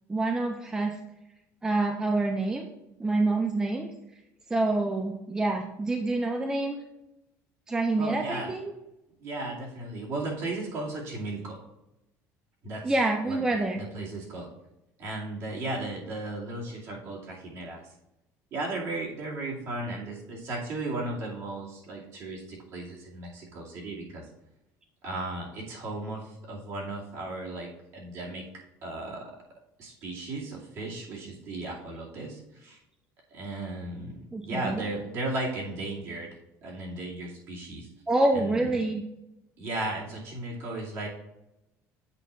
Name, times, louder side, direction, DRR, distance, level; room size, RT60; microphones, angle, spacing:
voice 1, 0.1-1.0 1.6-2.7 3.0-3.9 4.5-6.8 7.7-8.7 12.8-13.8 34.3-34.9 38.1-39.0, right 2 dB, 10° right, 3 dB, 0.5 m, -27 dB
voice 2, 8.0-8.5 9.2-11.6 12.6-12.9 13.2-13.4 13.7-14.5 15.0-17.9 18.5-24.3 25.0-28.4 28.8-29.3 29.8-32.8 33.3-36.3 36.6-37.9 38.3-38.7 39.6-41.1, right 2 dB, 50° right, -5 dB, 2.4 m, -35 dB
8.2 x 2.8 x 5.5 m, 0.91 s
cardioid pair, 150°, 6 cm